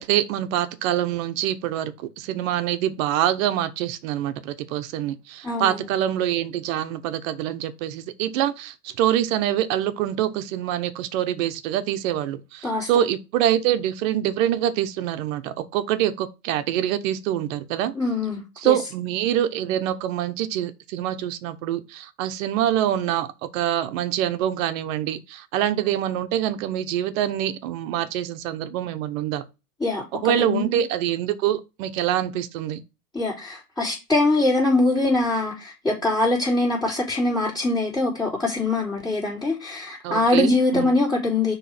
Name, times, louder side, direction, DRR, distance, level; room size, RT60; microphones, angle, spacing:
voice 1, 0.0-17.9 18.6-23.3 23.5-29.4 30.1-32.8 40.0-40.9, right 11 dB, 55° right, 1.0 m, -25 dB
voice 2, 5.4-5.8 12.6-12.9 18.0-18.7 29.8-30.8 33.1-41.5, left 2 dB, 10° left, 3.9 m, -23 dB
6.2 x 3.3 x 5.9 m
hypercardioid pair, 125°, 46 cm